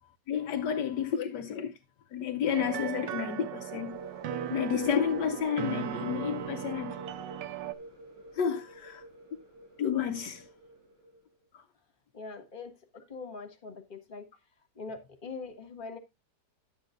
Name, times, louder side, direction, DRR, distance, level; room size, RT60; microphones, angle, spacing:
voice 1, 0.3-1.7 2.1-4.0 4.5-7.0 8.3-9.0 9.8-10.4 11.5-11.6, left 8 dB, 70° left, 1.3 m, -31 dB
sound 1, 2.5-7.7, right 12 dB, 85° right, 1.4 m, -37 dB
sound 2, 3.6-11.2, right 1 dB, 70° right, 6.5 m, -46 dB
voice 2, 12.1-14.3 14.7-16.0, left 4 dB, 30° left, 1.7 m, -43 dB
11.5 x 8.4 x 2.5 m
omnidirectional pair, 2.0 m